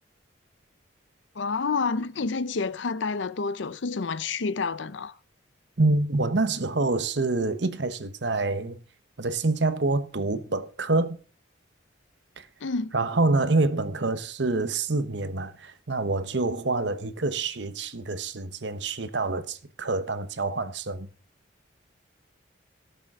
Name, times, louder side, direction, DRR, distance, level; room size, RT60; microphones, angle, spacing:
voice 1, 1.4-5.1 12.6-12.9, left 4 dB, 75° left, 0.6 m, -29 dB
voice 2, 5.8-8.8 9.2-11.2 12.4-12.5 12.9-21.1, right 3 dB, 65° right, 1.0 m, -26 dB
17.5 x 6.9 x 3.7 m
head